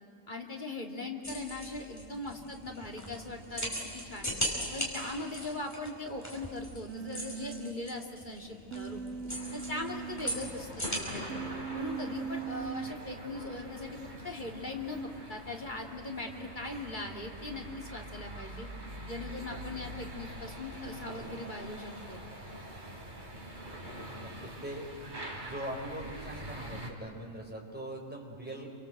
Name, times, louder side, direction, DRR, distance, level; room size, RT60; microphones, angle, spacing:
voice 1, 0.3-4.3 4.7-9.0 9.5-11.3 11.7-18.7 19.1-22.2, left 2 dB, 35° left, 2 dB, 2.8 m, -40 dB
sound 1, 1.2-11.0, equal, 10° left, 5.2 m, -39 dB
Human voice, 6.9-7.7 8.7-10.5 11.3-12.9, right 6 dB, 85° right, 1.2 m, -39 dB
sound 2, 9.3-26.9, right 1 dB, 35° right, 3.5 m, -44 dB
voice 2, 24.1-24.9 25.4-28.7, right 1 dB, 5° right, -1 dB, 4.6 m, -41 dB
29.0 x 25.0 x 7.9 m, 2.6 s
omnidirectional pair, 1.4 m